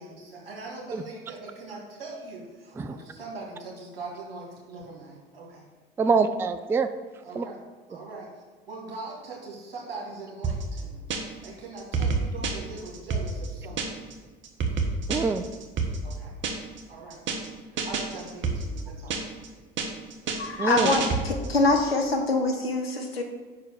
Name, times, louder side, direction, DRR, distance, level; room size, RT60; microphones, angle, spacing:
voice 1, 0.0-5.7 6.0-6.2 7.2-7.6 7.9-14.2 16.0-16.3 16.9-17.2 17.9-19.2, right 3 dB, 80° right, -3 dB, 1.9 m, -41 dB
voice 2, 6.0-6.9 7.4-7.5 15.1-15.5 20.6-20.9, right 4 dB, 10° right, 10 dB, 0.3 m, -25 dB
sound 1, 10.4-11.5 11.8-14.1 14.4-16.8 17.1-17.5 17.8-19.5 19.8-21.6, right 4 dB, 40° right, 1.2 m, -29 dB
voice 3, 20.4-23.2, left 3 dB, 85° left, 3 dB, 1.0 m, -24 dB
5.8 x 4.7 x 6.5 m, 1.4 s
figure-of-eight pair, 65°, 29 cm